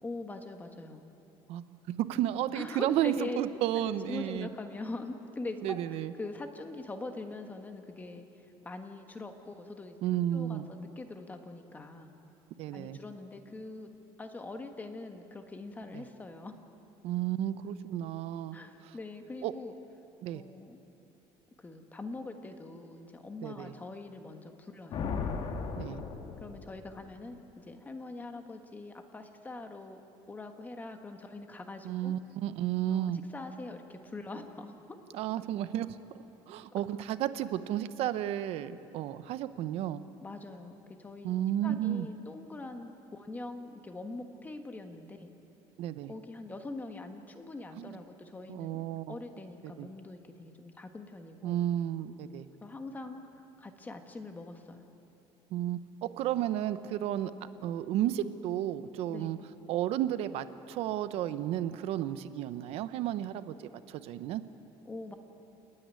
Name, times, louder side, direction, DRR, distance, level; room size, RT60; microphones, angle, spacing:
voice 1, 0.0-1.0 2.5-3.4 3.7-5.8 6.2-8.3 8.6-10.0 10.3-12.1 12.7-13.9 14.2-16.6 18.5-19.7 20.3-20.8 21.6-25.1 26.4-30.0 30.3-32.1 32.9-34.8 36.7-36.8 40.2-41.3 41.6-45.3 46.1-48.8 49.1-51.6 52.6-53.2 53.6-54.9 59.1-59.4 64.8-65.2, left 2 dB, 15° left, 6 dB, 1.4 m, -43 dB
voice 2, 1.5-4.5 5.6-6.1 10.0-10.7 12.6-13.0 15.9-16.0 17.0-18.6 19.4-19.5 20.2-20.4 23.4-23.7 25.8-26.0 31.8-33.2 35.1-36.0 36.5-40.0 41.2-42.1 45.8-46.1 47.8-48.0 48.5-49.1 49.8-49.9 51.4-52.5 55.5-57.3 57.6-59.4 59.7-63.5 63.9-64.4, right 12 dB, 65° right, 13 dB, 0.8 m, -32 dB
Thunder, 24.9-27.1, left 5 dB, 50° left, 1.5 m, -36 dB
29.0 x 9.8 x 9.7 m, 3.0 s
cardioid pair, 150°, 11 cm